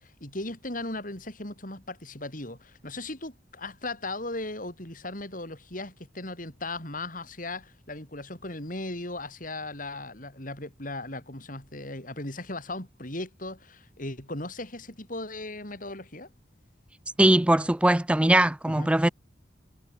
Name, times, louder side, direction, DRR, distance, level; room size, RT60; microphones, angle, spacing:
voice 1, 0.0-16.3 18.7-18.9, left 2 dB, 50° left, 6.6 m, -37 dB
voice 2, 17.2-19.1, right 1 dB, 5° right, 0.4 m, -20 dB
head